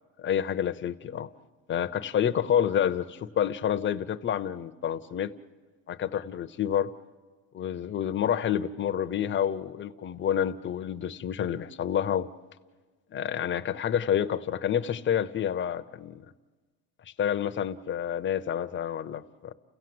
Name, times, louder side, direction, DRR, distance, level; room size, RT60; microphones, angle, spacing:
voice 1, 0.2-1.3 1.7-5.3 5.9-6.9 7.5-12.3 13.1-16.2 17.2-19.5, left 9 dB, 30° left, 0.7 m, -28 dB
30.0 x 16.5 x 7.8 m
cardioid pair, 150°, 38 cm